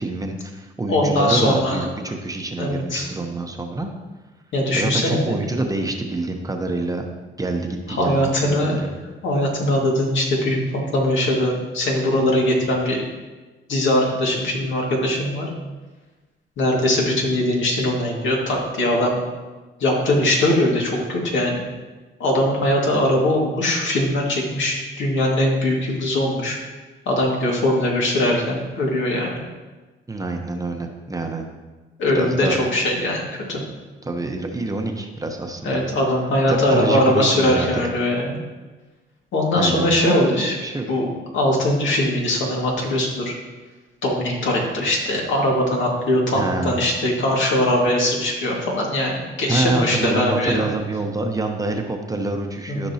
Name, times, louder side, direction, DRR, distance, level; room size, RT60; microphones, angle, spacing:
voice 1, 0.0-3.9 4.7-7.1 7.4-8.9 30.1-31.5 32.1-32.6 34.0-35.8 36.5-37.9 39.5-40.9 46.4-46.8 49.5-52.9, right 2 dB, 15° right, 3 dB, 0.9 m, -26 dB
voice 2, 0.9-1.9 2.6-3.1 4.5-5.3 7.9-8.8 9.2-13.0 13.7-15.5 16.6-19.2 19.8-21.6 22.2-26.6 27.1-29.3 32.0-33.2 33.5-33.6 35.6-38.4 39.3-40.6 40.9-41.1 41.3-43.3 44.0-50.7 52.7-52.9, left 1 dB, 70° left, -2 dB, 2.1 m, -21 dB
13.5 x 5.2 x 2.8 m, 1.2 s
cardioid pair, 90°, 20 cm